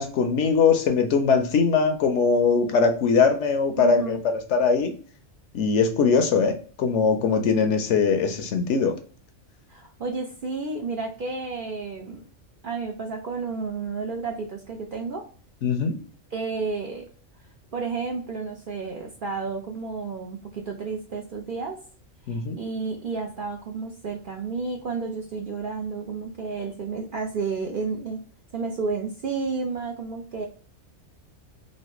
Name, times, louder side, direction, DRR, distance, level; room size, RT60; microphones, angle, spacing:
voice 1, 0.0-5.0 5.5-9.0 15.6-16.0 22.3-22.6, left 5 dB, 70° left, 7 dB, 0.8 m, -21 dB
voice 2, 3.8-4.2 9.7-12.2 12.6-15.2 16.3-17.1 17.7-21.8 22.3-28.2 28.5-30.5, right 4 dB, 55° right, 1 dB, 0.6 m, -31 dB
3.2 x 2.6 x 2.9 m, 0.41 s
omnidirectional pair, 1.3 m